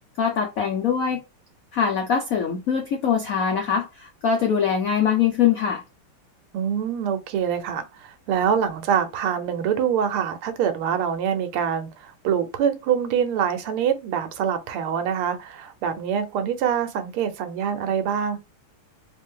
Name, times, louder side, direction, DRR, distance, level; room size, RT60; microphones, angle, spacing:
voice 1, 0.2-1.2 1.7-5.8, left 7 dB, 80° left, 0.7 m, -23 dB
voice 2, 6.5-18.4, right 8 dB, 85° right, 1.7 m, -25 dB
3.6 x 3.4 x 3.6 m
omnidirectional pair, 2.3 m